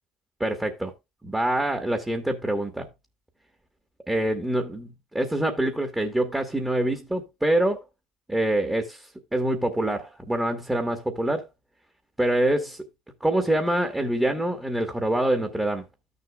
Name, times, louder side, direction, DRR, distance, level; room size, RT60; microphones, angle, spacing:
voice 1, 0.4-0.9 1.2-2.9 4.1-7.8 8.3-9.0 9.3-11.5 12.2-12.8 13.2-15.8, right 1 dB, 10° right, 1.6 m, -25 dB
13.5 x 6.7 x 2.4 m
hypercardioid pair, 80°, 3 cm